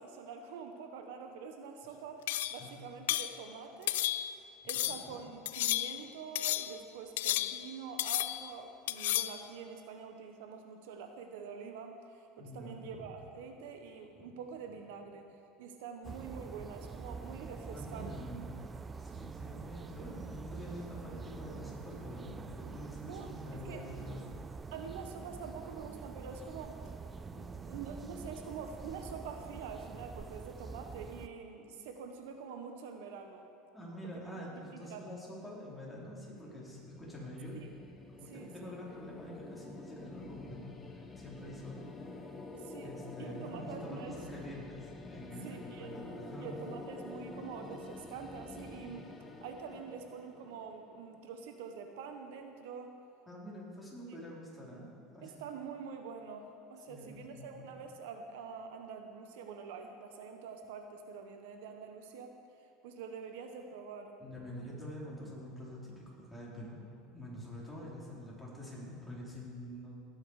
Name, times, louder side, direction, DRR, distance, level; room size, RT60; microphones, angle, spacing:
voice 1, 0.0-4.0 4.6-15.3 15.6-18.1 23.0-23.9 24.7-26.8 27.6-33.5 34.3-34.4 34.7-35.1 37.6-37.7 38.2-38.7 42.5-44.2 45.4-46.0 46.4-49.1 49.4-53.0 54.1-54.2 55.2-62.4 62.8-64.2 67.8-67.9, right 6 dB, 80° right, 5 dB, 1.1 m, -46 dB
sound 1, 2.3-2.7 3.1-3.4 3.9-4.4 4.7-5.1 5.4-6.1 6.3-6.8 7.2-7.7 8.0-8.5 8.9-9.4, left 15 dB, 85° left, 0.4 m, -33 dB
voice 2, 4.7-5.2 12.4-13.1 17.7-24.3 27.3-27.5 33.7-37.6 38.1-41.8 42.2-42.3 42.8-46.5 53.3-54.9 55.1-55.3 56.9-57.6 64.2-66.8 67.1-69.9, equal, ahead, -7 dB, 4.2 m, -46 dB
sound 2, 16.0-31.3, right 5 dB, 20° right, 0.4 m, -46 dB
sound 3, 36.3-51.3, left 2 dB, 20° left, 1.2 m, -48 dB
18.5 x 9.6 x 4.9 m, 2.5 s
supercardioid pair, 125°, 0 cm